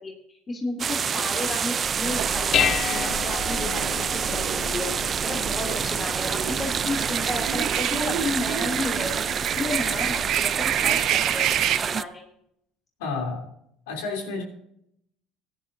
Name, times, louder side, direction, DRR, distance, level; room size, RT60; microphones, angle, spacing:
voice 1, 0.0-4.9 5.2-9.2 9.6-12.2, left 2 dB, 30° left, 0 dB, 2.9 m, -32 dB
sound 1, 0.8-12.0, right 7 dB, 40° right, 0.5 m, -27 dB
Dishes pots and pans, 1.8-11.1, left 10 dB, 50° left, 0.5 m, -33 dB
sound 2, 2.0-11.8, right 11 dB, 65° right, 0.9 m, -30 dB
voice 2, 13.0-13.5 13.9-14.4, left 4 dB, 85° left, 2 dB, 3.2 m, -30 dB
17.0 x 11.0 x 2.7 m, 0.73 s
supercardioid pair, 85°, 0 cm